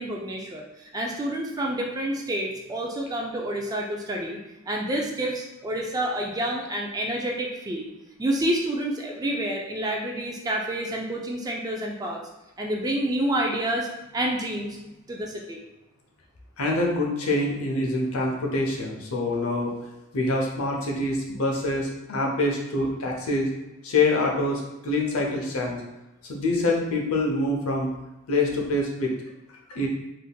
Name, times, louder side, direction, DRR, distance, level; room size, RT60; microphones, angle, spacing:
voice 1, 0.0-4.4 4.7-7.9 8.2-12.2 12.6-13.9 14.1-14.8 15.1-15.6, right 1 dB, 15° right, 0 dB, 0.3 m, -28 dB
voice 2, 16.6-19.7 20.1-23.5 23.8-25.8 26.2-27.9 28.3-29.1 29.7-29.9, left 2 dB, 80° left, -1 dB, 0.7 m, -25 dB
3.5 x 2.7 x 2.2 m, 0.99 s
head